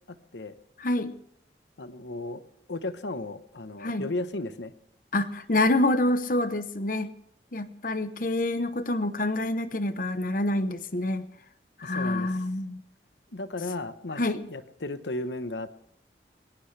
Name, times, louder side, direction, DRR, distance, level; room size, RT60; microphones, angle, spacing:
voice 1, 0.8-1.1 3.8-4.1 5.1-7.1 7.5-11.3 11.8-12.8 14.2-14.4, left 1 dB, 50° left, 11 dB, 0.9 m, -27 dB
voice 2, 1.8-2.4 2.7-4.7 11.8-12.4 13.3-14.2 14.5-15.7, left 2 dB, 90° left, 11 dB, 1.1 m, -34 dB
20.5 x 18.5 x 3.4 m, 0.70 s
head